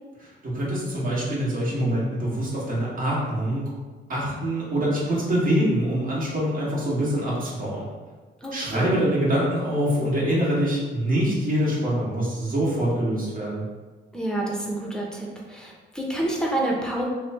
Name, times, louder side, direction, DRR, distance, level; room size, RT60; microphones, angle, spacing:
voice 1, 0.2-3.6 4.1-7.9 8.5-13.6, right 1 dB, 45° right, -6 dB, 1.3 m, -25 dB
voice 2, 8.4-9.0 14.1-17.0, right 1 dB, 5° left, -2 dB, 0.7 m, -28 dB
3.0 x 2.2 x 4.2 m, 1.3 s
cardioid pair, 90°, 20 cm